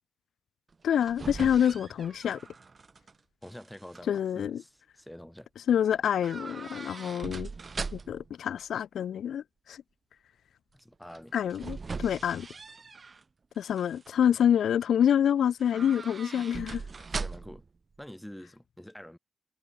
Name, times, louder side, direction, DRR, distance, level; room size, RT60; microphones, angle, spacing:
sound 1, 0.7-3.1 3.4-4.0 6.2-8.3 11.1-13.2 13.6-14.1 15.6-17.7 17.9-18.0, right 4 dB, 40° right, 3.6 m, -40 dB
voice 1, 0.8-2.4 4.1-4.6 5.7-7.5 7.9-9.8 11.3-12.5 13.6-16.8, left 9 dB, 85° left, 1.0 m, -27 dB
voice 2, 3.4-5.5 10.7-11.3 17.1-17.6 18.0-19.2, equal, 5° left, 4.0 m, -46 dB
cardioid pair, 80°, 0 cm